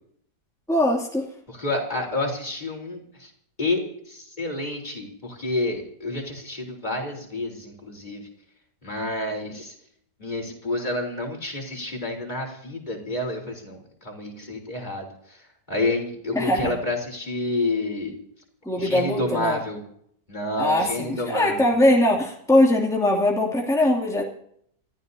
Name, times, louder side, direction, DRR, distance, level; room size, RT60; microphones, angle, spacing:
voice 1, 0.7-1.3 16.3-16.8 18.6-19.6 20.6-24.2, left 1 dB, ahead, -2 dB, 2.6 m, -21 dB
voice 2, 1.5-3.3 3.6-8.3 8.8-9.7 10.2-15.4 15.7-18.2 18.8-19.8 20.3-21.7, left 2 dB, 25° left, 1 dB, 4.1 m, -29 dB
27.5 x 14.5 x 2.8 m, 0.68 s
omnidirectional pair, 1.8 m